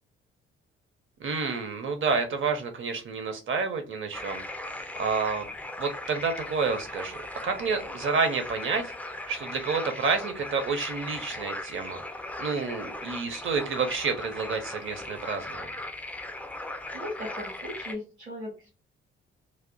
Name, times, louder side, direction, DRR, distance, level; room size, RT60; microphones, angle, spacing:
voice 1, 1.2-4.4 5.0-5.5 5.8-7.2 7.4-8.9 9.3-12.0 12.4-15.7, right 4 dB, 40° right, 6 dB, 0.8 m, -29 dB
sound 1, 4.1-18.0, left 1 dB, 5° left, 0.5 m, -38 dB
voice 2, 16.6-18.7, left 1 dB, 85° right, -5 dB, 1.0 m, -39 dB
2.4 x 2.1 x 3.7 m, 0.33 s
figure-of-eight pair, 40°, 32 cm